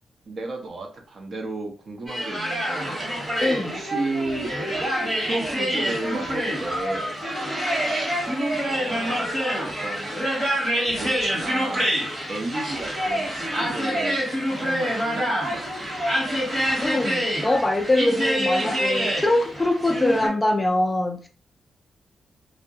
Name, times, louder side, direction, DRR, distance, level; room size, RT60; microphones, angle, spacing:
voice 1, 0.3-3.0 3.6-4.5 5.2-7.2 8.7-9.3 9.6-10.1 11.0-11.9 12.3-15.6, right 2 dB, 50° right, 0.6 m, -33 dB
sound 1, 2.1-20.3, equal, 25° right, 1.0 m, -26 dB
voice 2, 3.4-3.8 16.8-21.3, left 1 dB, 20° left, 0.3 m, -23 dB
2.2 x 2.1 x 2.7 m
cardioid pair, 110°, 0 cm